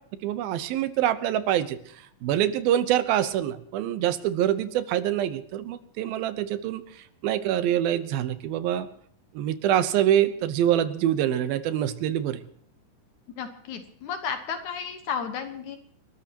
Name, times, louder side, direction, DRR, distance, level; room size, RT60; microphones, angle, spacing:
voice 1, 0.2-1.8 2.2-6.8 7.2-8.9 9.3-12.4, right 11 dB, 80° right, 12 dB, 2.8 m, -25 dB
voice 2, 13.4-15.8, left 6 dB, 65° left, 7 dB, 2.4 m, -33 dB
30.0 x 13.5 x 2.9 m, 0.62 s
omnidirectional pair, 4.2 m